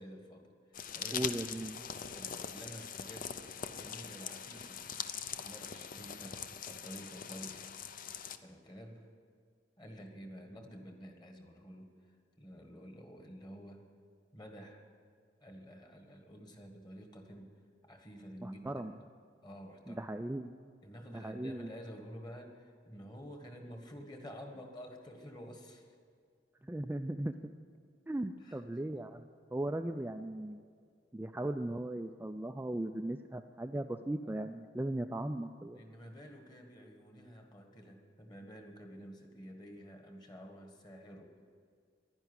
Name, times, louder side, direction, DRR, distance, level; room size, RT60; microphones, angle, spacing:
voice 1, 0.0-1.4 2.1-3.4 3.7-4.9 5.4-7.7 8.4-9.1 9.8-13.9 14.3-14.8 15.4-17.6 17.8-18.8 19.4-20.1 20.8-25.9 28.4-28.6 35.7-41.4, equal, 25° left, 4 dB, 1.6 m, -50 dB
sound 1, 0.7-8.4, left 7 dB, 50° left, 0.6 m, -42 dB
voice 2, 1.1-1.7 18.4-19.0 19.9-20.5 21.1-21.7 26.6-27.3 28.1-30.6 31.1-35.8, right 1 dB, 10° right, 5 dB, 0.3 m, -38 dB
11.0 x 10.5 x 9.7 m, 2.1 s
head